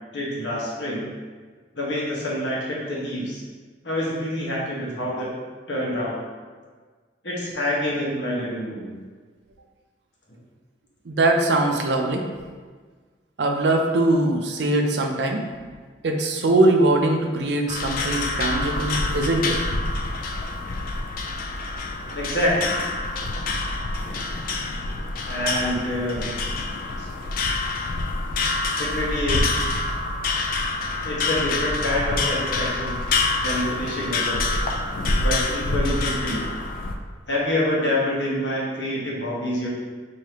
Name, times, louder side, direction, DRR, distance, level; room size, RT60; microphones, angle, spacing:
voice 1, 0.1-1.1 1.7-3.4 3.8-5.3 5.7-6.2 7.2-8.9 22.1-22.8 25.3-26.3 27.0-27.1 28.8-29.4 31.0-32.9 33.4-34.4 35.2-36.5 37.3-39.7, left 1 dB, 75° left, -5 dB, 1.1 m, -26 dB
voice 2, 11.1-12.3 13.4-15.4 16.0-19.6, right 2 dB, 70° right, 3 dB, 0.5 m, -21 dB
sound 1, 17.7-37.0, left 3 dB, 50° left, 0.3 m, -26 dB
4.9 x 2.8 x 2.9 m, 1.5 s
head